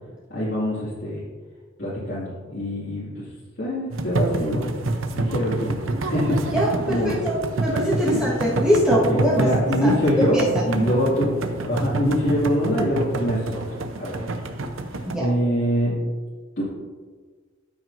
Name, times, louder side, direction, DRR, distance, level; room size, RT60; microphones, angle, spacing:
voice 1, 0.3-1.2 1.8-3.3 3.6-4.7 5.1-6.6 6.9-7.2 8.0-8.2 8.9-14.2 14.9-16.1 16.6-16.7, equal, 60° left, -10 dB, 2.1 m, -24 dB
sound 1, 3.9-15.2, right 2 dB, 75° right, 0.7 m, -28 dB
voice 2, 6.5-9.5 9.8-9.9 10.3-10.9 15.0-15.3, equal, 5° right, -8 dB, 1.4 m, -22 dB
13.0 x 6.0 x 2.6 m, 1.4 s
head